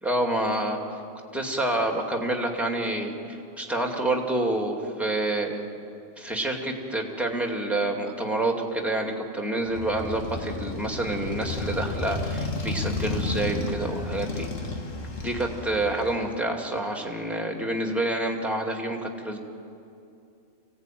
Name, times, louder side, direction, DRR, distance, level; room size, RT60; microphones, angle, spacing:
voice 1, 0.0-0.8 1.3-3.2 3.6-5.6 6.2-14.5 15.2-19.4, right 1 dB, ahead, 1 dB, 2.3 m, -28 dB
Motorcycle, 9.7-16.4, left 2 dB, 75° left, 2.1 m, -32 dB
26.0 x 17.0 x 9.2 m, 2.6 s
omnidirectional pair, 1.3 m